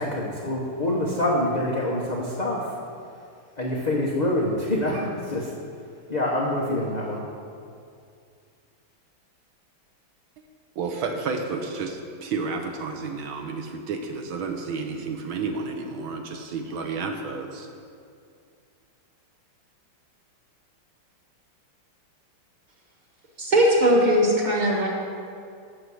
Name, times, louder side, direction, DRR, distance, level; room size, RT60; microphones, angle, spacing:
voice 1, 0.0-2.8 3.6-5.5 6.1-7.2, left 1 dB, 80° left, -4 dB, 0.3 m, -26 dB
voice 2, 10.8-17.7, right 4 dB, 75° right, 4 dB, 1.5 m, -31 dB
voice 3, 23.4-24.9, equal, 25° right, -2 dB, 1.1 m, -19 dB
7.7 x 6.8 x 6.2 m, 2.3 s
omnidirectional pair, 2.4 m